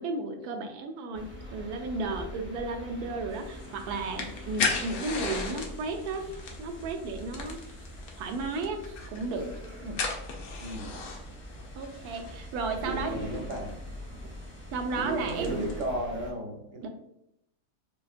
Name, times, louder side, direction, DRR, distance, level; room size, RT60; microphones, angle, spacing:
voice 1, 0.0-6.3 6.6-7.8 8.2-9.5 9.8-10.0 11.8-13.3 14.7-15.7 16.8-16.9, right 3 dB, 80° right, 5 dB, 1.1 m, -34 dB
sound 1, 1.1-16.3, equal, 10° right, 0.5 m, -43 dB
sound 2, 3.3-15.8, left 4 dB, 75° left, 1.2 m, -38 dB
voice 2, 10.6-11.0 12.8-13.8 14.9-16.9, right 1 dB, 60° right, 1 dB, 1.0 m, -34 dB
5.0 x 2.4 x 2.4 m, 0.80 s
omnidirectional pair, 1.6 m